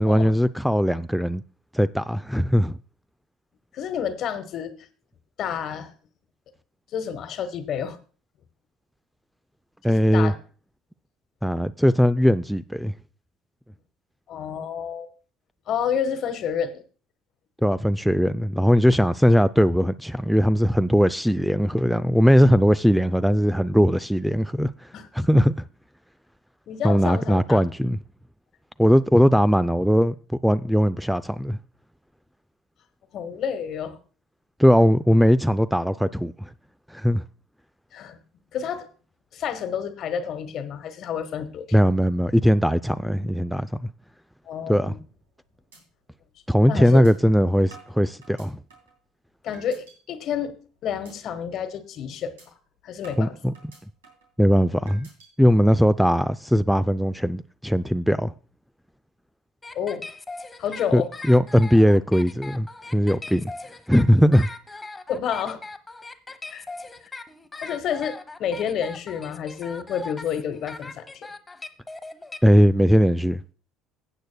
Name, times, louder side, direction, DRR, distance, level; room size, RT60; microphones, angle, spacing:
voice 1, 0.0-1.4 1.7-2.8 9.8-10.3 11.4-12.9 17.6-24.7 25.1-25.5 26.8-28.0 28.8-30.2 30.4-31.6 34.6-36.5 36.9-37.2 41.7-43.9 44.7-44.9 46.5-48.6 53.2-53.5 54.4-55.1 55.4-58.3 60.9-61.0 61.3-62.7 62.9-63.5 63.9-64.5 72.4-73.4, equal, ahead, 0.3 m, -19 dB
voice 2, 3.7-4.7 5.4-5.9 6.9-8.0 9.9-10.4 14.3-15.1 15.7-16.8 24.9-25.1 26.7-27.6 33.1-34.0 37.9-38.2 38.5-38.9 39.3-41.7 44.5-45.0 46.7-47.1 49.4-50.5 50.8-52.3 52.8-53.4 59.7-60.0 60.6-61.1 65.1-65.6 66.5-66.6 67.6-71.3, left 8 dB, 55° left, 1.2 m, -29 dB
sound 1, 45.1-45.4 45.7-45.8 46.2-46.3 47.0-47.1 47.7-49.0 49.5-50.0 50.4-50.6 51.0-51.2 51.6-51.7 52.4-52.5 53.0-54.3 54.9-55.3, right 4 dB, 90° right, 3.1 m, -49 dB
sound 2, 59.6-72.4, left 3 dB, 15° left, 0.9 m, -39 dB
16.0 x 8.1 x 2.2 m
hypercardioid pair, 70°, 0 cm